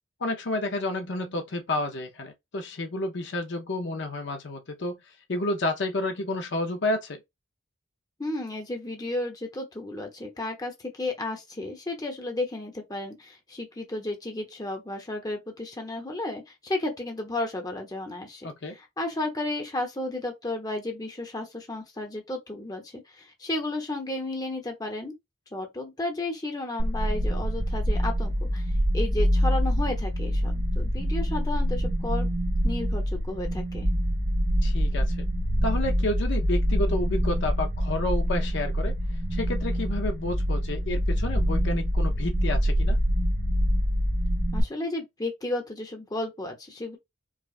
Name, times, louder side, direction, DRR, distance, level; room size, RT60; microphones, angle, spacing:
voice 1, 0.2-5.0 5.3-7.2 18.4-18.7 34.6-35.2 35.6-38.9 39.3-43.0, left 2 dB, 60° left, 0.6 m, -30 dB
voice 2, 8.2-25.1 25.5-28.7 28.9-32.3 32.6-33.9 44.5-47.0, left 2 dB, 20° left, 0.9 m, -33 dB
sound 1, 26.8-44.6, equal, 35° right, 0.6 m, -25 dB
4.9 x 2.2 x 2.4 m
head